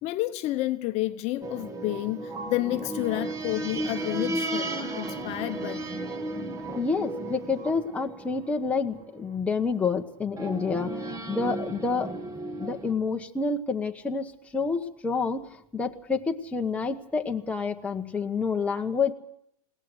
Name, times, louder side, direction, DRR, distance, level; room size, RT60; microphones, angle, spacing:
voice 1, 0.0-6.0, left 17 dB, 35° left, 1.0 m, -30 dB
sound 1, 1.4-9.3 10.4-12.9, right 2 dB, 15° right, 1.5 m, -34 dB
voice 2, 6.7-12.1 12.6-15.5 15.7-19.1, left 4 dB, 5° left, 1.1 m, -28 dB
21.0 x 18.0 x 7.7 m
supercardioid pair, 140°, 18 cm